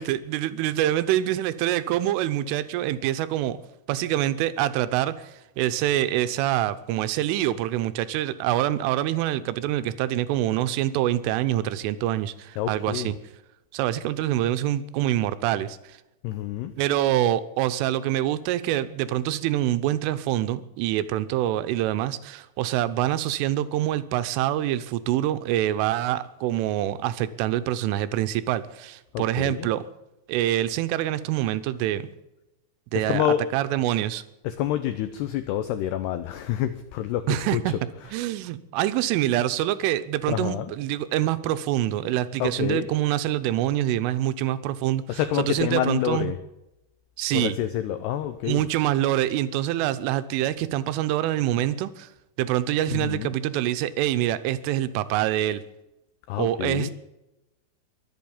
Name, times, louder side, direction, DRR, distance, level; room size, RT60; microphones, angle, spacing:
voice 1, 0.0-3.6 3.9-13.2 13.7-15.8 16.8-29.9 30.3-32.1 32.9-33.3 33.5-34.2 37.3-37.7 38.1-45.2 45.5-46.3 47.2-47.6 48.5-52.1 52.4-55.6 56.4-56.9, right 13 dB, 80° right, 12 dB, 3.2 m, -25 dB
voice 2, 12.6-13.1 16.2-16.7 29.1-29.7 32.9-33.4 34.4-38.2 40.3-40.7 42.4-42.9 45.1-46.4 47.3-48.7 52.9-53.4 56.3-56.9, left 12 dB, 85° left, 10 dB, 2.3 m, -28 dB
23.0 x 8.3 x 7.2 m, 0.93 s
omnidirectional pair, 5.7 m